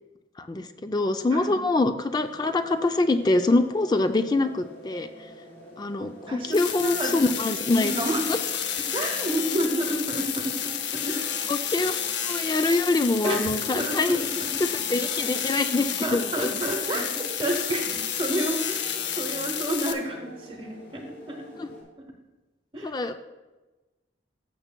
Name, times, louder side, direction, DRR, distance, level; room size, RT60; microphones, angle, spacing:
voice 1, 0.4-5.1 5.8-6.1 6.5-8.0 8.3-8.4 11.5-12.0 12.2-14.2 14.9-16.5 21.6-21.7 22.8-23.2, left 2 dB, 20° left, 8 dB, 0.3 m, -24 dB
sound 1, 2.1-21.8, equal, 55° left, 3.0 m, -46 dB
voice 2, 6.3-7.3 7.7-8.3 8.9-11.3 13.2-14.6 16.0-21.5 22.7-23.0, right 1 dB, 25° right, 0 dB, 0.9 m, -30 dB
sound 2, 6.5-19.9, left 8 dB, 70° left, 0.7 m, -30 dB
14.5 x 6.8 x 2.2 m, 1.1 s
head